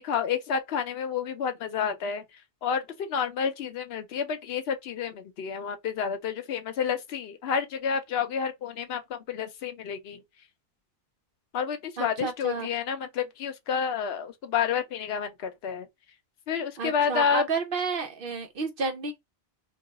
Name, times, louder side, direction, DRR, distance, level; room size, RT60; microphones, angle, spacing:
voice 1, 0.0-2.2 2.6-10.2 11.5-15.9 16.5-17.5, left 7 dB, 80° left, 0.9 m, -29 dB
voice 2, 12.0-12.7 16.8-19.2, right 4 dB, 65° right, 0.8 m, -31 dB
2.3 x 2.3 x 3.8 m
omnidirectional pair, 1.0 m